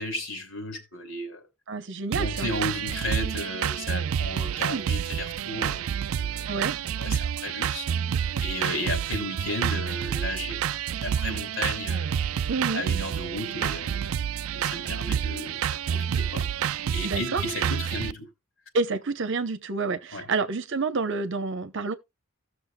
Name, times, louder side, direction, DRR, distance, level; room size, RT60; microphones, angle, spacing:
voice 1, 0.0-1.4 2.1-6.4 7.0-7.9 8.4-12.2 12.7-14.1 14.5-15.6 15.9-16.5 16.9-18.3 20.1-20.3, left 1 dB, 65° left, 2.9 m, -34 dB
voice 2, 1.7-2.5 4.7-4.9 6.5-6.8 12.5-12.8 17.0-17.4 18.7-22.0, right 3 dB, 55° right, 0.8 m, -28 dB
sound 1, 2.1-18.1, right 8 dB, 70° right, 0.4 m, -29 dB
17.0 x 6.5 x 2.2 m
head